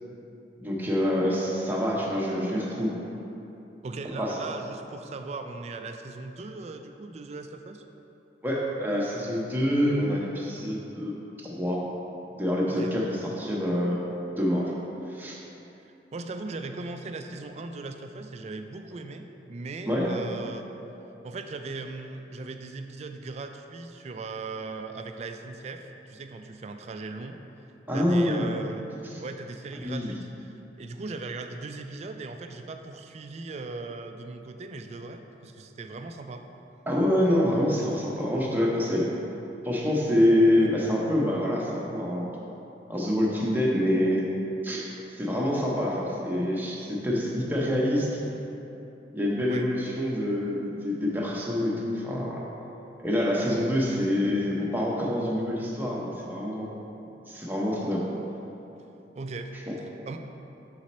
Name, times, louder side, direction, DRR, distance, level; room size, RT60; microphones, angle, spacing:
voice 1, 0.6-3.0 4.2-4.4 8.4-11.1 11.4-11.8 12.4-14.0 14.4-14.7 15.1-15.4 19.9-20.1 27.9-28.6 29.1-29.2 29.8-30.1 36.9-39.1 39.6-42.2 42.9-44.3 44.6-44.8 45.2-48.2 49.1-52.4 53.0-56.7 57.3-58.0 59.7-59.8, left 1 dB, 10° right, -4 dB, 0.8 m, -26 dB
voice 2, 3.8-7.8 10.6-10.7 12.7-12.9 16.1-20.7 21.2-27.4 27.9-28.9 29.2-36.5 40.6-40.7 49.5-49.7 59.1-59.5 59.8-60.2, right 3 dB, 40° right, 6 dB, 0.3 m, -38 dB
6.3 x 4.1 x 4.2 m, 3.0 s
head